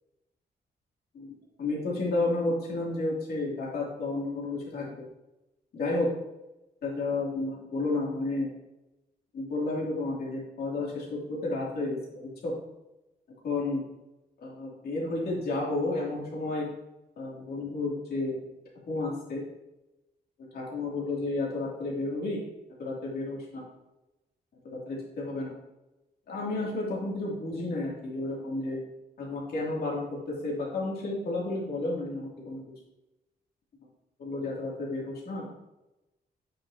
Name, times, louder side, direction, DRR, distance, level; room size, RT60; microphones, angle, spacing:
voice 1, 1.6-5.0 5.7-6.1 6.8-8.5 9.3-12.5 13.4-13.8 14.4-16.7 17.2-18.4 18.9-19.4 20.5-22.4 22.8-23.6 24.6-25.5 26.3-28.8 29.2-32.6 34.2-35.6, left 2 dB, 65° left, -4 dB, 2.5 m, -31 dB
8.9 x 6.0 x 2.7 m, 0.95 s
wide cardioid pair, 170°, 17 cm